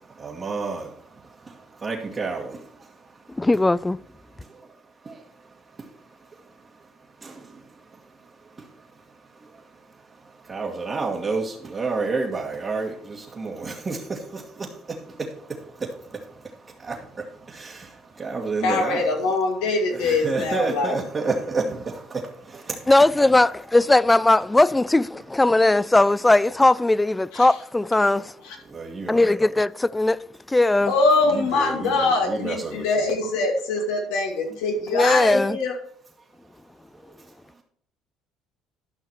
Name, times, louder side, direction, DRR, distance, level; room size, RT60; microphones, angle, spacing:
voice 1, 0.2-0.9 1.4-2.9 4.4-4.5 5.0-5.2 5.8-5.9 7.2-7.6 8.6-8.7 10.4-16.4 16.8-19.3 20.0-22.9 28.7-29.2 31.3-32.8 37.0-37.1, right 3 dB, 30° right, 1.7 m, -30 dB
voice 2, 3.4-4.0 22.9-28.3 29.1-30.9 34.9-35.6, left 2 dB, 15° left, 0.3 m, -19 dB
voice 3, 18.6-21.0 27.3-27.5 28.5-28.6 30.9-35.7, left 3 dB, 85° left, 2.3 m, -23 dB
12.5 x 5.7 x 4.6 m
supercardioid pair, 85°, 0 cm